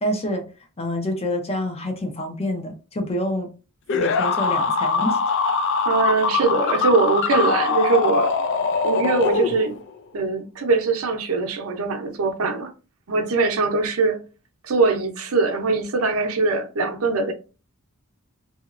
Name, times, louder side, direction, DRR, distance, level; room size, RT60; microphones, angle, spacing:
voice 1, 0.0-0.5 0.8-3.5 4.0-5.2, left 1 dB, 30° left, 0.7 m, -27 dB
sound 1, 3.9-9.9, left 4 dB, 60° left, 0.4 m, -22 dB
voice 2, 5.9-8.4 8.8-9.8 10.1-12.7 13.1-14.2 14.6-17.3, right 3 dB, 85° right, 0.6 m, -22 dB
2.8 x 2.8 x 2.5 m
head